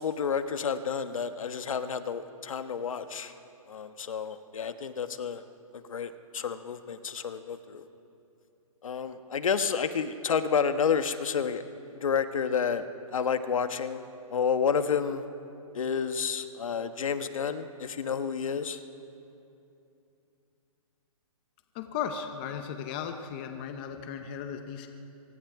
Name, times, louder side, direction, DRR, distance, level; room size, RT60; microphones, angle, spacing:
voice 1, 0.0-3.3 3.7-5.4 5.7-7.8 8.8-11.6 12.0-14.0 14.3-15.2 15.7-18.8, left 6 dB, 65° left, 10 dB, 1.2 m, -30 dB
voice 2, 21.7-24.9, left 8 dB, 15° left, 6 dB, 0.6 m, -36 dB
25.0 x 23.0 x 4.8 m, 2.8 s
hypercardioid pair, 170°, 19 cm